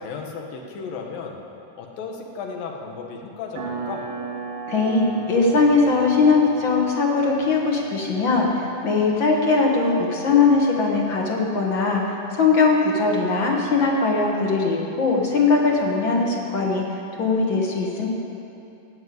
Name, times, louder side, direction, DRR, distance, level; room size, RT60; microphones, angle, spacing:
voice 1, 0.0-1.4 1.8-4.1, left 5 dB, 90° left, 2 dB, 2.9 m, -34 dB
sound 1, 3.6-9.8, right 4 dB, 80° right, 2.9 m, -36 dB
voice 2, 4.7-16.8 17.2-18.1, left 4 dB, 50° left, -1 dB, 1.5 m, -20 dB
17.0 x 5.9 x 9.3 m, 2.8 s
omnidirectional pair, 3.9 m